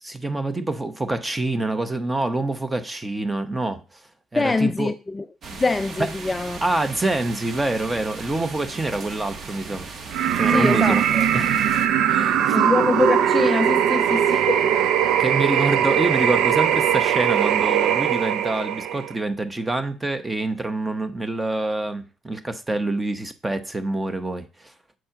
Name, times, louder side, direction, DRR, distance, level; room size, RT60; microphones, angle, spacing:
voice 1, 0.0-4.0 4.3-4.9 6.6-9.9 10.3-11.0 11.3-11.5 12.0-12.6 15.2-24.7, right 2 dB, 15° right, 1.0 m, -26 dB
voice 2, 4.3-5.3 5.6-6.6 10.5-11.3 12.5-14.7, left 3 dB, 15° left, 0.3 m, -24 dB
sound 1, 5.4-11.9, right 4 dB, 45° right, 1.4 m, -38 dB
sound 2, 10.1-19.1, right 9 dB, 70° right, 0.5 m, -20 dB
7.7 x 4.3 x 5.7 m
cardioid pair, 140°, 0 cm